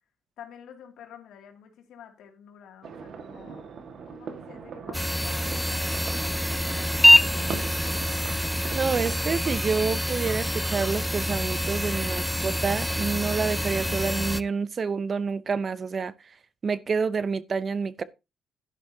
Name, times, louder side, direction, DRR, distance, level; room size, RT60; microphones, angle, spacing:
voice 1, 0.4-3.6 4.1-6.4 6.8-8.1, left 9 dB, 80° left, 2.5 m, -49 dB
sound 1, 2.8-9.2, right 6 dB, 60° right, 1.7 m, -40 dB
sound 2, 4.9-14.4, left 1 dB, 5° left, 0.5 m, -25 dB
voice 2, 8.7-16.1 16.6-18.0, right 5 dB, 40° right, 0.7 m, -28 dB
11.5 x 11.0 x 2.8 m
cardioid pair, 90°, 0 cm